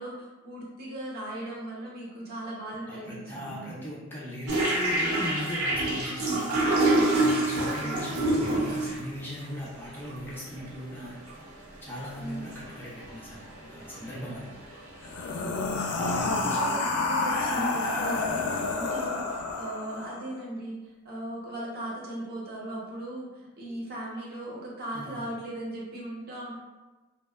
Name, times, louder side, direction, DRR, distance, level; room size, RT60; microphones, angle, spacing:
voice 1, 0.0-3.9 7.8-8.0 8.3-8.8 12.2-12.6 15.4-26.5, right 1 dB, 45° right, -4 dB, 0.6 m, -38 dB
voice 2, 2.9-6.8 7.2-11.2 11.8-14.5 15.9-16.7 24.9-25.3, left 1 dB, 10° left, -7 dB, 0.3 m, -39 dB
sound 1, 4.5-9.0 10.0-10.1 10.6-10.7 11.0-11.4 11.8-12.2 12.5-14.9, right 2 dB, 85° right, 0.6 m, -26 dB
sound 2, 15.0-20.3, left 3 dB, 90° left, 0.3 m, -29 dB
2.7 x 2.1 x 2.2 m, 1.2 s
head